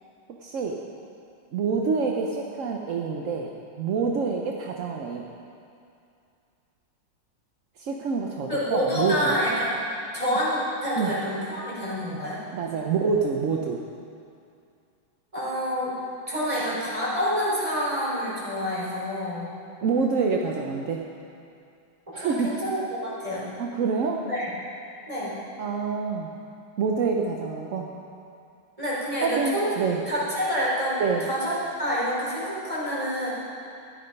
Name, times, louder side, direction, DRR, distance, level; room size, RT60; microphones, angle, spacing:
voice 1, 0.4-0.8 1.5-3.5 3.8-5.3 7.8-9.3 11.0-11.1 12.5-13.8 16.5-16.6 19.8-21.0 22.1-22.6 23.6-24.2 25.6-26.3 26.8-27.9 29.2-30.0 31.0-31.3, right 5 dB, 60° right, 1 dB, 0.8 m, -26 dB
voice 2, 8.5-9.7 10.1-12.4 15.3-15.9 16.3-19.5 22.2-23.5 24.3-24.5 25.1-25.3 28.8-29.8 30.1-33.3, equal, 15° right, -8 dB, 4.1 m, -27 dB
13.5 x 11.0 x 5.3 m, 2.5 s
omnidirectional pair, 2.1 m